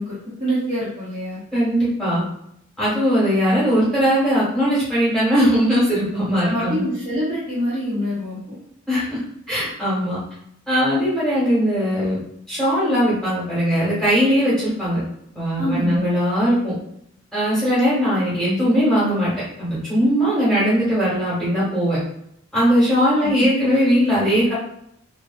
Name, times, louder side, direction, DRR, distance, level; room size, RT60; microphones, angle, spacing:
voice 1, 0.0-1.4 6.4-8.6 15.6-16.1 23.2-23.5, equal, 25° right, -12 dB, 0.9 m, -26 dB
voice 2, 1.5-2.2 2.8-6.8 8.9-9.2 9.5-10.2 10.7-12.2 12.5-15.0 15.3-16.7 17.3-19.3 19.6-22.0 22.5-24.5, equal, 5° left, -10 dB, 1.4 m, -19 dB
3.0 x 2.5 x 2.3 m, 0.72 s
head